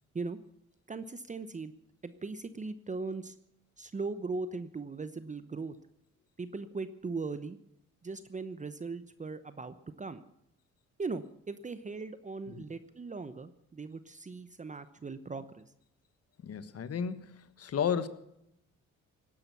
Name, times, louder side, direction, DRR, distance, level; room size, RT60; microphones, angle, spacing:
voice 1, 0.9-1.7 2.0-3.3 3.8-5.8 6.4-7.6 8.0-10.2 11.0-15.6, right 4 dB, 25° right, 13 dB, 0.9 m, -39 dB
voice 2, 16.4-18.1, left 7 dB, 55° left, 13 dB, 1.4 m, -33 dB
18.0 x 10.5 x 6.9 m, 0.80 s
cardioid pair, 90°, 30 cm